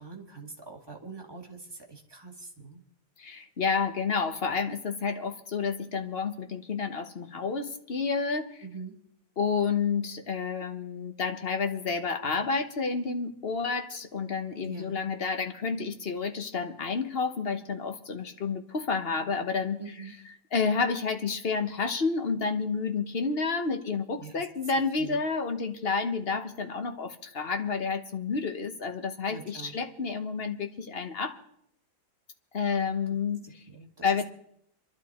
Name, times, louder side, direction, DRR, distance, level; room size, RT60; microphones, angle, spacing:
voice 1, 0.0-2.8 8.6-9.0 14.6-15.0 19.8-20.2 24.2-24.5 25.0-25.2 29.3-29.8 33.1-33.2 33.4-34.2, right 4 dB, 15° right, 0 dB, 2.1 m, -44 dB
voice 2, 3.2-8.5 9.4-19.8 20.5-31.4 32.5-33.6 34.0-34.2, left 5 dB, 40° left, 7 dB, 1.2 m, -30 dB
26.5 x 11.5 x 4.3 m, 0.73 s
omnidirectional pair, 1.8 m